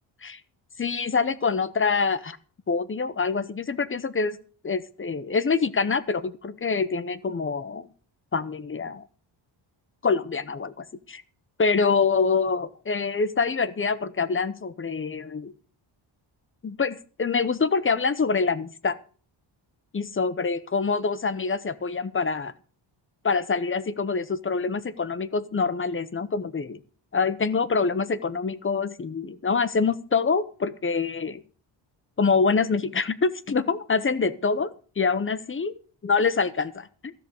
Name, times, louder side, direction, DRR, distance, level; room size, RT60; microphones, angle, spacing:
voice 1, 0.8-2.4 2.7-4.4 4.6-7.9 8.3-9.0 10.0-11.2 11.6-15.5 16.6-19.0 19.9-22.5 23.2-26.8 27.1-31.4 32.2-35.7 36.0-37.1, left 4 dB, 25° left, 14 dB, 0.8 m, -25 dB
14.0 x 6.9 x 8.1 m, 0.41 s
cardioid pair, 125°, 48 cm